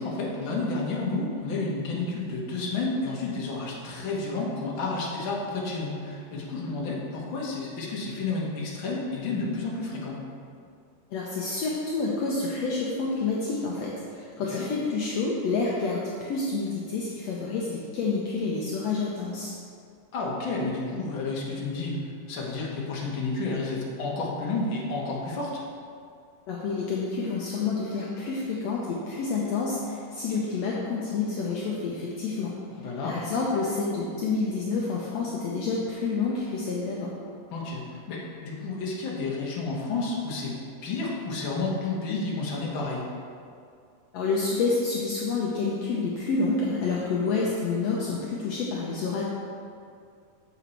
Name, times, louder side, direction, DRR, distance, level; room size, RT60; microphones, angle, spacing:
voice 1, 0.0-10.2 14.5-14.7 20.1-22.0 22.3-25.6 32.8-33.1 37.5-40.5 40.8-43.1, left 3 dB, 50° left, -4 dB, 1.5 m, -31 dB
voice 2, 11.1-19.5 26.5-32.5 33.0-37.1 44.1-49.2, left 4 dB, 75° left, -4 dB, 1.5 m, -28 dB
8.2 x 7.2 x 4.5 m, 2.3 s
omnidirectional pair, 4.0 m